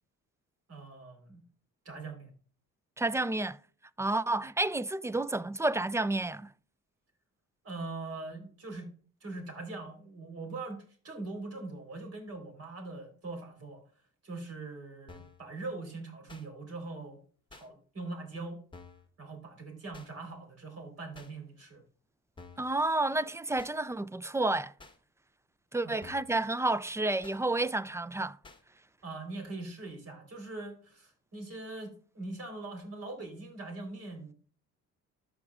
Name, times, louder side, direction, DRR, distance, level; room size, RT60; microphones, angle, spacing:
voice 1, 0.7-1.4 1.8-2.3 7.6-8.9 9.2-13.8 14.2-17.2 17.5-18.6 19.2-21.8 25.8-26.0 29.0-34.3, right 3 dB, 55° right, 3.9 m, -42 dB
voice 2, 3.0-3.6 4.0-6.5 22.6-24.7 25.7-28.4, right 2 dB, 10° right, 0.3 m, -30 dB
sound 1, 15.1-15.4 16.3-16.5 17.5-17.7 18.7-19.1 19.9-20.1 21.1-21.3 22.4-22.7 23.6-23.8 24.8-25.0 26.0-26.4 27.2-27.4 28.4-28.6, left 4 dB, 15° left, 1.1 m, -51 dB
14.0 x 4.9 x 2.4 m
cardioid pair, 90°, 30 cm